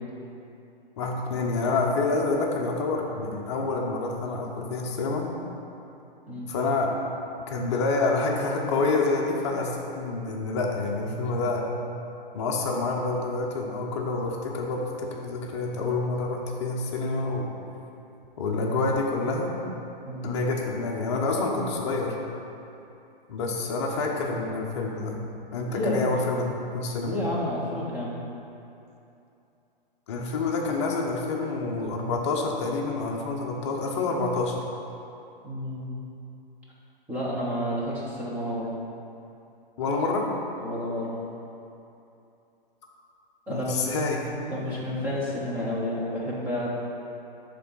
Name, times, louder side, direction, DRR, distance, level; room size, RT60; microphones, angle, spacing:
voice 1, 1.0-5.3 6.5-6.9 7.5-11.6 12.3-17.5 18.4-19.5 20.2-22.2 23.3-25.2 25.5-27.2 30.1-34.6 39.8-40.3 43.5-44.2, left 3 dB, 30° left, -1 dB, 0.7 m, -27 dB
voice 2, 20.0-20.4 25.7-26.1 27.0-28.1 35.4-35.9 37.1-38.7 40.6-41.2 43.5-43.8 44.5-46.7, left 1 dB, 5° right, -7 dB, 0.7 m, -30 dB
7.4 x 3.7 x 5.4 m, 2.7 s
hypercardioid pair, 160°, 29 cm